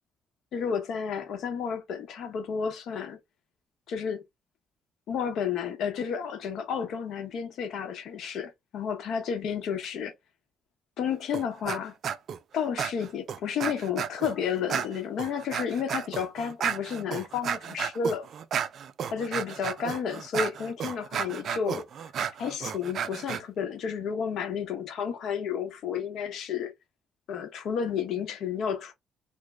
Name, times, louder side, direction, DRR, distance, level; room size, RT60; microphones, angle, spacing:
voice 1, 0.5-3.2 3.9-4.2 5.1-10.1 11.0-11.9 12.5-18.3 19.1-21.9 22.4-26.7 27.3-28.9, left 7 dB, 75° left, 0.8 m, -31 dB
sound 1, 11.3-11.8 12.0-12.4 12.8-14.3 14.7-23.4, right 8 dB, 60° right, 0.3 m, -32 dB
3.0 x 2.1 x 3.5 m
cardioid pair, 90°, 0 cm